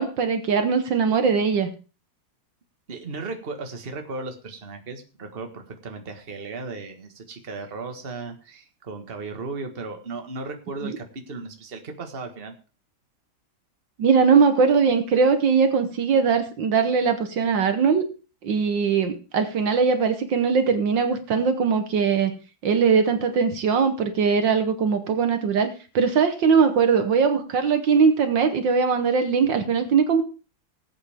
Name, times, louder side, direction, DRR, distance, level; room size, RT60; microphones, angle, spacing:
voice 1, 0.0-1.7 10.8-10.9 14.0-18.0 18.4-22.3 22.6-25.7 26.0-30.2, right 5 dB, 65° right, 8 dB, 1.8 m, -20 dB
voice 2, 2.9-12.5, right 3 dB, 30° right, 5 dB, 1.6 m, -36 dB
19.5 x 8.5 x 3.5 m, 0.34 s
omnidirectional pair, 2.2 m